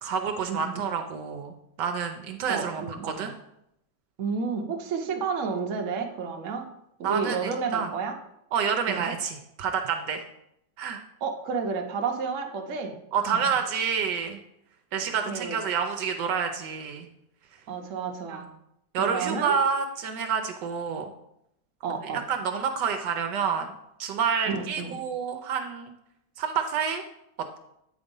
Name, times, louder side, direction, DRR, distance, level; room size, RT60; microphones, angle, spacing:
voice 1, 0.0-3.3 7.0-7.9 8.5-10.2 10.8-11.0 13.1-14.4 14.9-17.1 18.3-18.4 18.9-21.1 22.0-23.7 24.0-25.9 26.4-27.0, right 6 dB, 70° right, 5 dB, 1.2 m, -28 dB
voice 2, 2.5-3.3 4.2-6.7 7.0-8.2 8.9-9.0 11.2-13.0 15.0-15.6 17.7-18.5 19.0-19.6 21.8-22.2 24.5-25.0, right 5 dB, 55° right, 3 dB, 1.0 m, -31 dB
8.7 x 4.1 x 5.2 m, 0.80 s
omnidirectional pair, 2.0 m